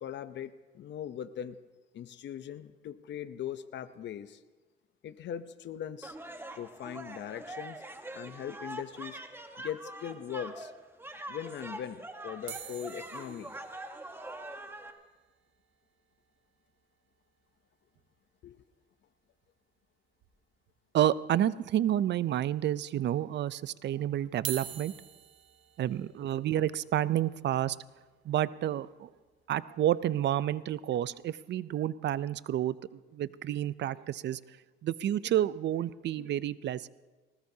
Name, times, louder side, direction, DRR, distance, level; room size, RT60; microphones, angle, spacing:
voice 1, 0.0-1.6 1.9-4.4 5.0-6.2 6.5-7.8 8.1-9.2 9.6-10.7 11.3-13.6 18.4-18.6, left 9 dB, 65° left, 12 dB, 0.7 m, -40 dB
sound 1, 6.0-14.9, right 1 dB, 10° right, 1.2 m, -44 dB
sound 2, 12.5-16.8 17.1-17.2 17.4-17.6 17.9-18.1 19.4-19.5 20.2-20.7 21.2-21.3 22.2-22.3 24.3-30.4 30.9-31.2, right 11 dB, 80° right, 1.2 m, -47 dB
voice 2, 20.9-24.9 25.8-27.8 28.3-29.1 29.5-34.4 34.8-36.9, right 11 dB, 60° right, 17 dB, 0.5 m, -30 dB
20.0 x 19.0 x 2.8 m, 1.3 s
cardioid pair, 90°, 20 cm